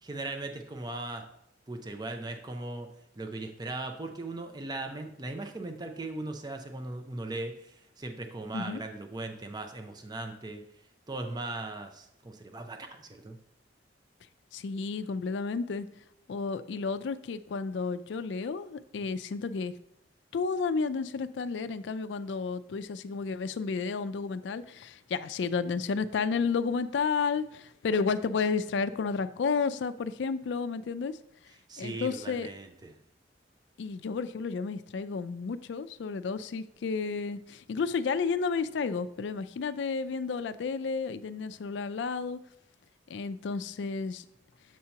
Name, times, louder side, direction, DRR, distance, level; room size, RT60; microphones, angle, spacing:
voice 1, 0.0-1.2 1.7-2.9 3.1-13.4 31.5-33.0, right 2 dB, 20° right, 5 dB, 0.5 m, -38 dB
voice 2, 14.5-15.9 16.3-19.7 20.3-31.2 31.8-32.5 33.8-42.4 43.1-44.2, left 5 dB, 75° left, 13 dB, 0.4 m, -32 dB
7.5 x 2.8 x 5.7 m, 0.75 s
head